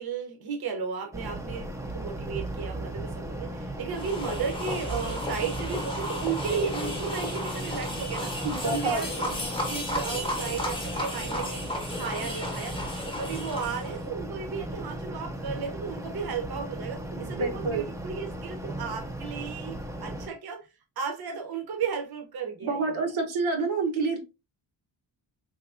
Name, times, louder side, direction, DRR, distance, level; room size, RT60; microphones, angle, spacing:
voice 1, 0.0-9.3 9.7-11.6 11.9-20.7 21.0-23.1, right 6 dB, 55° right, 0.7 m, -34 dB
sound 1, 1.1-20.3, right 1 dB, 5° right, 0.4 m, -36 dB
sound 2, 3.9-14.0, left 1 dB, 10° left, 0.7 m, -34 dB
voice 2, 8.4-9.0 17.1-17.8 22.6-24.2, right 3 dB, 90° right, 0.9 m, -28 dB
3.6 x 2.8 x 2.4 m
wide cardioid pair, 160°, 46 cm